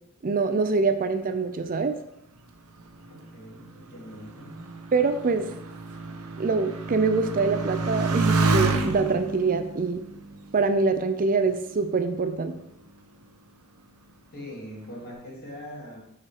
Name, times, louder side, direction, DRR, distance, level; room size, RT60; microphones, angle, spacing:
voice 1, 0.2-2.0 4.9-5.5 6.4-10.0 10.5-12.5, right 4 dB, 40° right, 8 dB, 0.5 m, -24 dB
Motorcycle, 2.6-11.5 12.3-12.9, right 3 dB, 85° right, 1.0 m, -30 dB
voice 2, 3.1-4.5 14.3-16.0, equal, 45° left, -3 dB, 3.0 m, -42 dB
8.7 x 4.9 x 4.8 m, 0.79 s
head